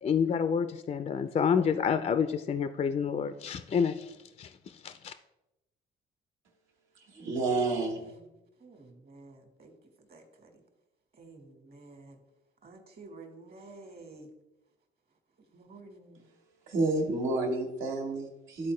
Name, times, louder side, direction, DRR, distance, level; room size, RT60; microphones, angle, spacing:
voice 1, 0.0-4.1 4.4-4.5 4.8-5.1, left 7 dB, 35° left, 10 dB, 0.4 m, -28 dB
voice 2, 7.0-8.1 16.7-18.7, right 2 dB, 85° right, 0 dB, 1.7 m, -30 dB
voice 3, 8.6-9.7 10.0-10.6 11.1-12.2 12.6-14.3 15.5-16.3, right 3 dB, 50° right, 5 dB, 1.6 m, -51 dB
12.0 x 4.2 x 3.2 m, 0.94 s
cardioid pair, 90°, 20 cm